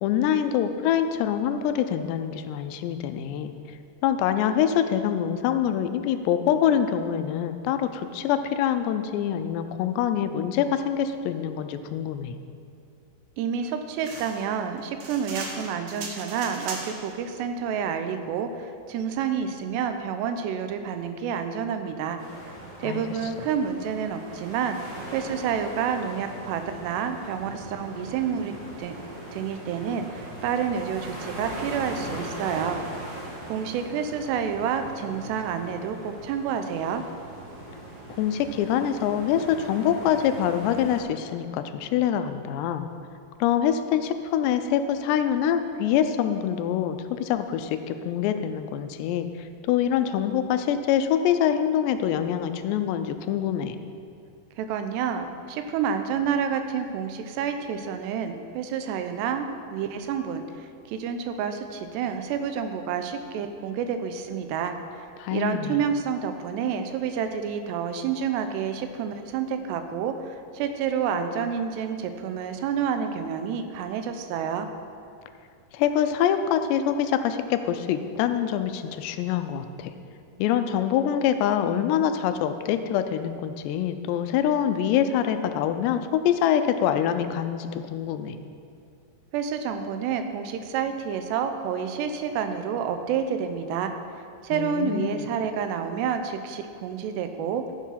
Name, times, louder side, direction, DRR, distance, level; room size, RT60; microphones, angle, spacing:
voice 1, 0.0-3.5 4.0-12.4 22.8-23.0 38.2-42.9 43.4-53.8 65.2-65.8 75.7-79.9 80.4-88.4 94.5-95.2, left 9 dB, 90° left, 9 dB, 2.9 m, -25 dB
voice 2, 13.4-22.2 22.8-24.8 25.1-28.5 28.8-28.9 29.3-32.8 33.5-37.0 54.6-74.7 89.3-93.9 94.4-97.6, right 7 dB, 85° right, 8 dB, 2.8 m, -29 dB
sound 1, 14.0-17.1, right 3 dB, 60° right, 2.1 m, -38 dB
sound 2, 22.2-41.0, right 1 dB, 40° right, 3.4 m, -40 dB
14.0 x 7.3 x 5.7 m, 2.4 s
omnidirectional pair, 4.8 m